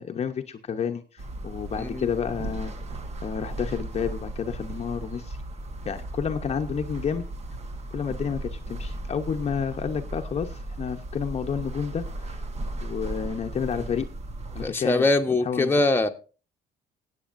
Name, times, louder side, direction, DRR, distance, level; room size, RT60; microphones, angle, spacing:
voice 1, 0.0-2.7 3.2-5.4 5.9-7.3 7.9-12.4 12.8-14.1 14.6-15.1 15.4-15.7, left 7 dB, 40° left, 0.8 m, -30 dB
sound 1, 1.2-14.7, right 1 dB, 40° right, 1.2 m, -36 dB
voice 2, 14.6-16.1, left 2 dB, 15° left, 1.0 m, -22 dB
20.5 x 8.3 x 2.6 m
cardioid pair, 110°, 17 cm